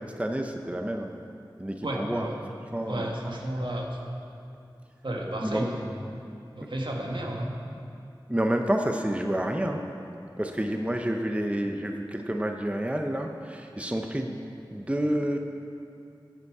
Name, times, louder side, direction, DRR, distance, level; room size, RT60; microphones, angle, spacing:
voice 1, 0.2-1.1 1.6-2.3 2.7-3.1 5.4-5.7 8.3-9.8 10.4-14.4 14.7-15.4, right 1 dB, 15° right, 3 dB, 0.7 m, -29 dB
voice 2, 1.8-2.3 2.9-4.0 5.0-5.8 6.5-7.5, right 1 dB, 70° right, -1 dB, 1.4 m, -32 dB
14.0 x 8.1 x 4.8 m, 2.6 s
wide cardioid pair, 45°, 8 cm